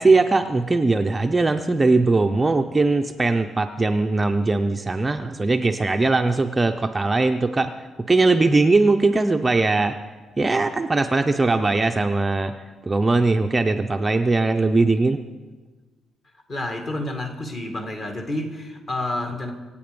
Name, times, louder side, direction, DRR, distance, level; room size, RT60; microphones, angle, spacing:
voice 1, 0.0-7.7 8.1-10.0 10.4-12.5 12.8-15.2, right 3 dB, 15° right, 6 dB, 0.5 m, -20 dB
voice 2, 16.5-19.5, left 1 dB, 35° left, 5 dB, 2.0 m, -29 dB
24.5 x 8.7 x 5.2 m, 1.3 s
cardioid pair, 160°, 0 cm